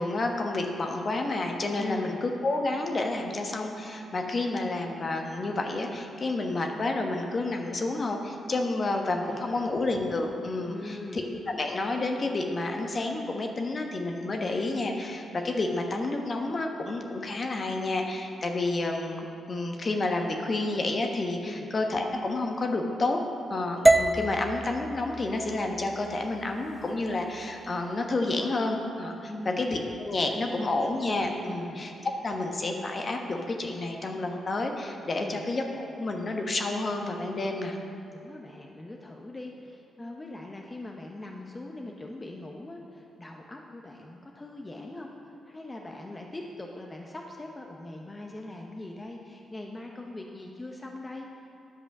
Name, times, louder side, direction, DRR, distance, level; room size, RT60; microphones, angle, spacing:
voice 1, 0.0-23.2 23.5-31.9 32.2-37.8, left 2 dB, 45° left, 3 dB, 1.1 m, -30 dB
voice 2, 1.7-2.2 9.2-9.9 10.6-11.3 21.4-21.7 29.2-29.7 30.3-30.8 31.4-31.8 35.2-35.4 38.1-45.1 45.5-51.3, left 2 dB, 25° left, 1 dB, 0.9 m, -41 dB
sound 1, 23.9-28.0, right 2 dB, 15° right, 0.4 m, -27 dB
10.0 x 5.5 x 6.1 m, 2.8 s
hypercardioid pair, 45°, 0 cm